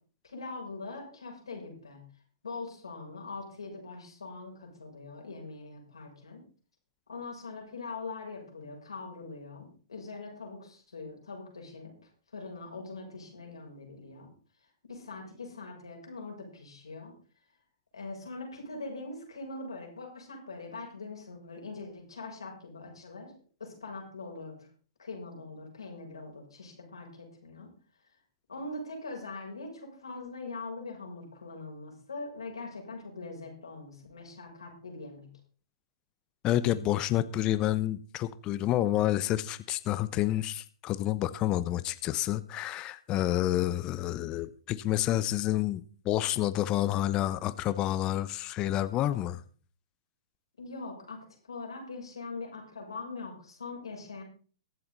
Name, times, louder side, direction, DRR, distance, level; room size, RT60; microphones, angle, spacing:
voice 1, 0.2-2.0 2.4-6.4 7.1-11.9 12.3-14.3 14.6-17.1 17.9-23.3 23.6-24.7 25.0-27.7 28.5-35.3 50.6-54.2, left 3 dB, 90° left, 1 dB, 6.8 m, -42 dB
voice 2, 36.4-49.4, left 13 dB, 30° left, 14 dB, 0.9 m, -29 dB
22.5 x 7.8 x 4.1 m, 0.40 s
hypercardioid pair, 125°, 3 cm